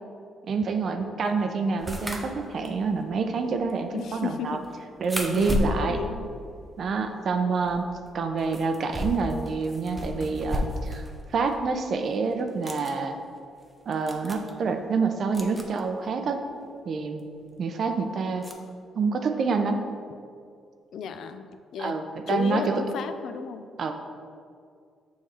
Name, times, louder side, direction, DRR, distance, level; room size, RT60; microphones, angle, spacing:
voice 1, 0.5-4.6 5.0-6.0 6.8-7.8 8.1-11.0 11.3-13.2 13.9-16.4 16.9-17.2 17.6-18.5 19.0-19.8 21.8-22.8 23.8-23.9, right 4 dB, 55° right, 6 dB, 0.5 m, -27 dB
voice 2, 1.2-1.7 3.9-4.6 5.3-6.4 20.9-21.5 21.7-22.0 22.3-23.7, left 6 dB, 70° left, 9 dB, 0.4 m, -33 dB
sound 1, 1.8-7.3 7.6-11.2 11.5-11.6 12.4-12.9 13.6-13.7 13.9-14.5 15.3-15.8 17.2-17.3 18.4-18.5, equal, 5° right, 0.7 m, -34 dB
7.1 x 3.1 x 4.3 m, 2.3 s
cardioid pair, 90°, 0 cm